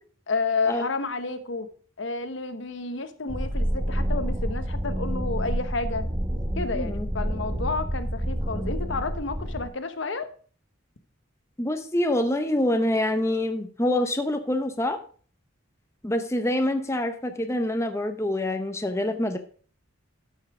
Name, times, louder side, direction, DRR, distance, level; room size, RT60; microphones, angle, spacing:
voice 1, 0.3-1.7 2.0-6.1 6.5-10.3, left 4 dB, 65° left, 10 dB, 1.0 m, -30 dB
sound 1, 3.3-9.7, equal, 20° right, 1.1 m, -28 dB
voice 2, 6.7-7.1 11.6-15.0 16.0-19.4, left 1 dB, 15° left, 6 dB, 0.7 m, -26 dB
12.5 x 5.6 x 4.8 m, 0.44 s
head